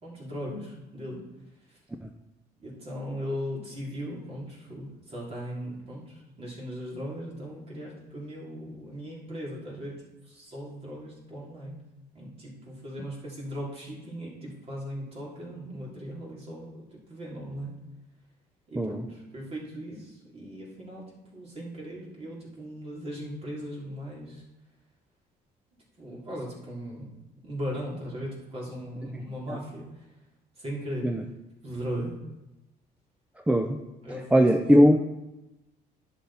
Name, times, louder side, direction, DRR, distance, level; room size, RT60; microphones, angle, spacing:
voice 1, 0.0-1.2 2.6-11.8 12.1-17.8 18.7-21.1 21.3-24.4 26.0-27.1 27.4-29.8 30.6-31.1 31.6-32.1 34.0-34.7, equal, 35° right, -4 dB, 3.5 m, -38 dB
voice 2, 33.5-33.8 34.3-35.0, equal, 5° right, 4 dB, 0.6 m, -20 dB
10.5 x 7.0 x 4.3 m, 0.98 s
cardioid pair, 110°, 17 cm